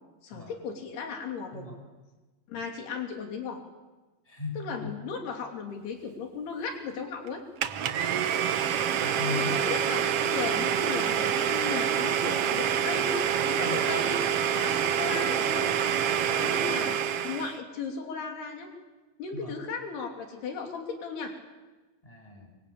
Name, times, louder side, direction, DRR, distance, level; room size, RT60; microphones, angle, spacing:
voice 1, 0.2-1.7 2.5-3.6 4.6-7.4 9.4-14.2 14.6-15.7 16.4-18.7 19.2-21.3, left 5 dB, 85° left, 3 dB, 5.0 m, -36 dB
voice 2, 4.3-4.9 9.0-9.6 13.6-13.8 16.3-16.5 19.3-19.5 22.0-22.5, left 3 dB, 10° left, 0 dB, 8.0 m, -37 dB
Domestic sounds home sounds, 7.6-17.6, right 8 dB, 85° right, 1.3 m, -27 dB
27.0 x 24.5 x 8.9 m, 1.2 s
omnidirectional pair, 4.5 m